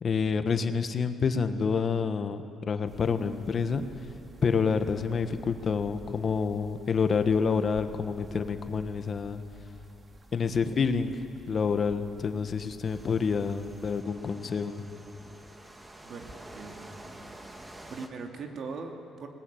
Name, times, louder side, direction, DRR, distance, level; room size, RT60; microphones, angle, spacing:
voice 1, 0.0-3.9 4.4-9.4 10.3-11.2 11.5-14.8, left 5 dB, 45° left, 9 dB, 1.4 m, -28 dB
sound 1, 2.9-14.0, right 2 dB, 35° right, 2.4 m, -51 dB
sound 2, 12.8-18.1, right 1 dB, 20° right, 2.1 m, -48 dB
voice 2, 16.0-17.5 17.9-19.3, right 4 dB, 65° right, 3 dB, 2.5 m, -41 dB
20.0 x 19.5 x 9.1 m, 2.7 s
cardioid pair, 90°, 0 cm